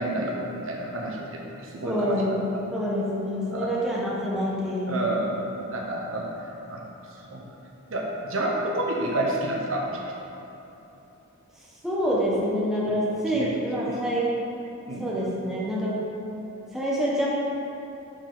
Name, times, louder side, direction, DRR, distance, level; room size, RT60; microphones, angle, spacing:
voice 1, 0.0-2.4 3.5-3.7 4.9-5.3 5.7-6.3 6.7-6.8 7.2-7.5 7.9-10.0 12.9-13.0 13.3-13.8 14.9-15.1, right 1 dB, 60° right, -1 dB, 0.9 m, -29 dB
voice 2, 1.8-5.1 11.8-14.3 15.0-16.0 16.7-17.3, equal, ahead, -7 dB, 1.2 m, -26 dB
11.0 x 4.5 x 3.9 m, 3.0 s
head